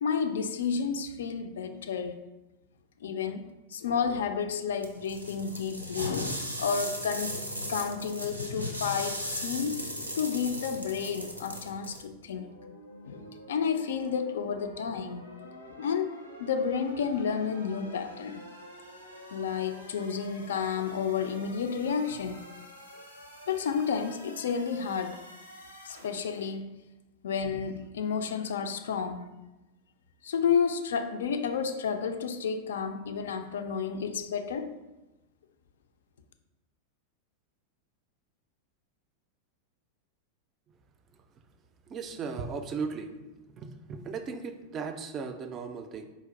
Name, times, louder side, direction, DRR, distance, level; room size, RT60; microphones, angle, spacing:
voice 1, 0.0-2.2 3.0-7.4 7.7-9.8 10.2-12.6 13.1-15.2 15.7-18.4 19.3-22.4 23.5-25.2 25.8-26.8 27.2-29.4 30.2-34.7, left 6 dB, 60° left, 8 dB, 0.3 m, -31 dB
sound 1, 4.8-12.0, equal, 85° right, 0.5 m, -37 dB
sound 2, 12.4-26.5, left 1 dB, 90° left, 0.7 m, -49 dB
voice 2, 41.9-43.1 43.6-46.1, right 5 dB, 30° right, 8 dB, 0.3 m, -36 dB
4.0 x 2.5 x 3.8 m, 1.0 s
figure-of-eight pair, 90°, 0 cm